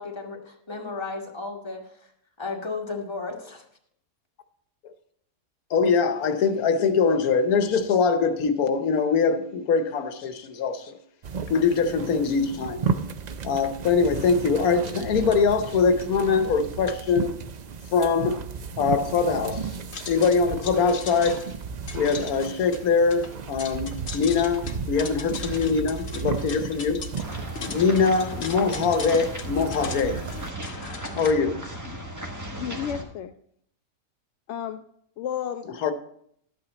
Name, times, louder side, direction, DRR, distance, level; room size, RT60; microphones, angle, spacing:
voice 1, 0.0-1.9 2.4-3.6, left 3 dB, 20° left, 1.5 m, -34 dB
voice 2, 5.7-11.0 11.5-12.8 13.4-17.3 17.9-18.4 18.8-19.6 20.1-21.5 21.9-27.0 27.7-30.2 31.2-31.6 35.8-35.9, left 5 dB, 90° left, 1.3 m, -23 dB
sound 1, 11.2-30.5, right 5 dB, 60° right, 0.4 m, -34 dB
sound 2, 19.9-31.3, left 5 dB, 50° left, 1.2 m, -40 dB
sound 3, 27.2-33.0, right 1 dB, 15° right, 1.2 m, -36 dB
voice 3, 32.5-33.3 34.5-34.8 35.2-35.7, left 9 dB, 65° left, 0.7 m, -32 dB
12.5 x 8.8 x 4.0 m
omnidirectional pair, 1.5 m